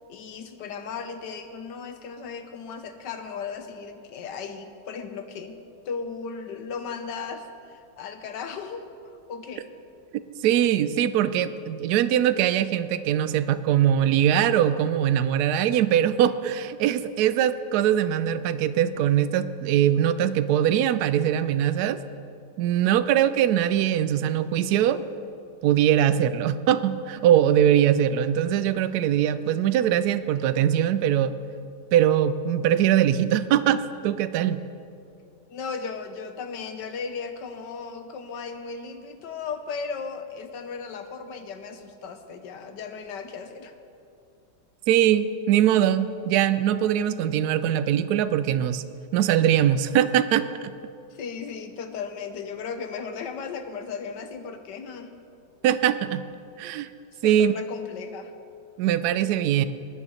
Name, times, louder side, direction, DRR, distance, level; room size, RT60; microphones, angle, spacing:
voice 1, 0.1-5.6 5.8-8.9 9.3-9.7 35.5-43.7 51.1-55.1 57.1-58.3, left 5 dB, 65° left, 8 dB, 1.4 m, -36 dB
voice 2, 10.4-22.0 22.6-25.0 25.6-31.4 31.9-34.6 44.9-48.8 49.1-50.5 55.6-56.3 56.6-56.9 57.2-57.5 58.8-59.6, right 10 dB, 75° right, 13 dB, 0.9 m, -22 dB
19.5 x 9.8 x 4.2 m, 2.5 s
omnidirectional pair, 2.1 m